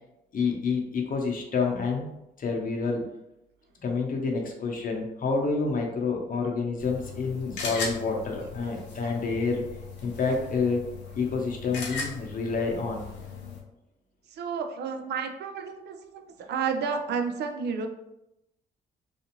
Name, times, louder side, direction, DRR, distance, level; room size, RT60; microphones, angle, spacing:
voice 1, 0.3-2.1 2.4-3.0 3.8-9.6 10.0-10.8 11.1-13.0, left 4 dB, 50° left, 1 dB, 0.7 m, -28 dB
sound 1, 6.8-13.6, left 4 dB, 85° left, 0.7 m, -38 dB
voice 2, 14.3-16.2 16.5-17.9, right 6 dB, 70° right, 5 dB, 0.4 m, -31 dB
2.5 x 2.4 x 2.9 m, 0.88 s
cardioid pair, 70°, 18 cm